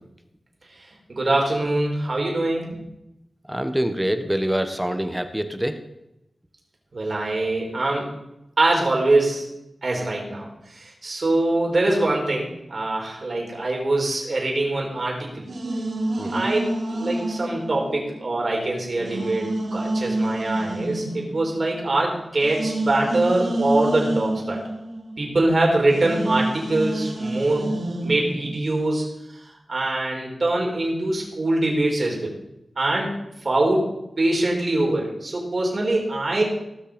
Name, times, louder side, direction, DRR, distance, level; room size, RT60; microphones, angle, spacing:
voice 1, 1.1-2.8 6.9-8.2 8.6-9.5 9.8-15.5 16.3-16.6 16.9-24.6 25.2-27.7 28.0-29.1 29.3-29.4 29.7-32.3 32.8-33.1 33.4-36.4, right 2 dB, 55° right, -1 dB, 4.3 m, -23 dB
voice 2, 3.5-5.8 16.2-16.5, equal, 5° right, 8 dB, 1.3 m, -25 dB
sound 1, 15.5-18.5 18.9-25.5 25.9-28.6, right 1 dB, 85° right, 2.7 m, -28 dB
18.0 x 6.5 x 5.3 m, 0.88 s
wide cardioid pair, 65°, 0 cm